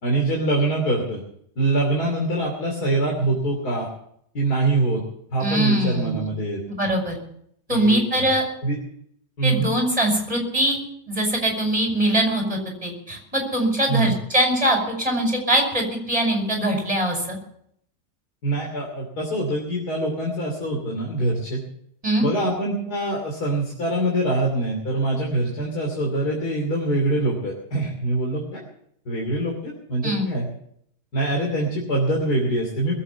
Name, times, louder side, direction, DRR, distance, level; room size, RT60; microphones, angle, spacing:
voice 1, 0.0-1.2 1.6-3.9 4.4-5.0 5.3-6.6 7.7-8.3 8.6-8.8 9.4-9.7 13.9-14.1 18.4-21.6 22.2-28.6 29.1-30.5 31.1-32.9, right 2 dB, 80° left, -1 dB, 3.5 m, -24 dB
voice 2, 5.4-6.3 6.7-7.1 7.7-8.4 9.4-10.8 11.1-17.4 22.0-22.3 30.0-30.3, right 1 dB, 20° right, 1 dB, 5.5 m, -22 dB
21.0 x 8.4 x 7.2 m, 0.70 s
omnidirectional pair, 1.6 m